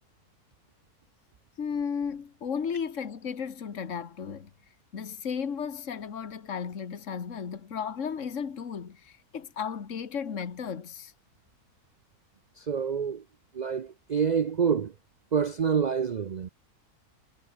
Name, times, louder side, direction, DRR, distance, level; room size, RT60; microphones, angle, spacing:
voice 1, 1.6-4.5 4.9-11.1, left 6 dB, 50° left, 1.9 m, -34 dB
voice 2, 12.6-13.2 13.5-14.9 15.3-16.5, right 7 dB, 70° right, 0.4 m, -27 dB
omnidirectional pair, 1.6 m